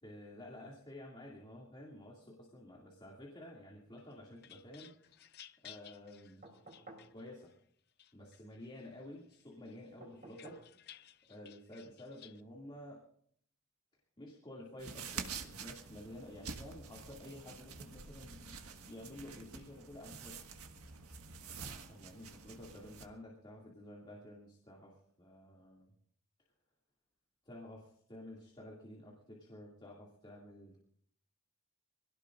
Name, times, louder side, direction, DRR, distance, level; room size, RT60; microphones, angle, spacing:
voice 1, 0.0-5.4 5.6-6.5 7.1-7.5 8.1-13.0 14.2-20.4 21.9-25.9 27.4-30.8, left 1 dB, 20° left, -3 dB, 2.4 m, -51 dB
sound 1, 4.0-7.5 8.0-8.9 9.3-12.4, left 11 dB, 50° left, 0.5 m, -58 dB
sound 2, 6.4-7.1 10.0-10.7 12.3-12.4, right 2 dB, 40° right, 3.8 m, -54 dB
sound 3, 14.8-23.1, right 5 dB, 80° right, 1.6 m, -48 dB
25.0 x 17.5 x 2.5 m, 0.63 s
head